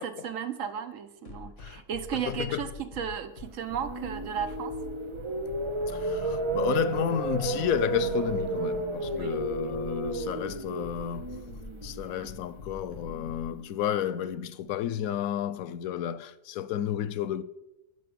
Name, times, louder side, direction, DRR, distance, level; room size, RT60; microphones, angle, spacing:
voice 1, 0.0-4.7 9.1-9.4, right 8 dB, 70° right, 1.2 m, -35 dB
sound 1, 1.2-13.5, left 3 dB, 60° left, 1.8 m, -44 dB
voice 2, 2.3-2.6 5.9-11.3 11.8-17.4, left 10 dB, 90° left, 1.0 m, -31 dB
sound 2, 3.5-13.6, right 3 dB, 30° right, 0.5 m, -33 dB
12.0 x 4.9 x 6.9 m
omnidirectional pair, 1.4 m